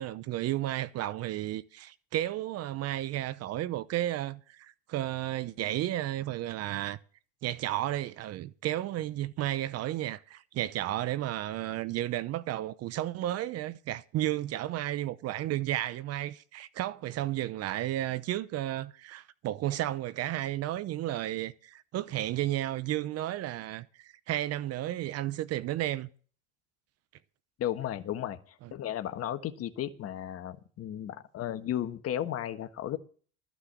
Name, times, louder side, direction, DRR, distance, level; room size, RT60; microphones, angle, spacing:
voice 1, 0.0-7.0 7.4-26.1 28.6-28.7, right 14 dB, 45° right, 0.8 m, -33 dB
voice 2, 27.6-33.0, left 11 dB, 45° left, 1.5 m, -34 dB
13.5 x 6.1 x 8.2 m
supercardioid pair, 110°, 33 cm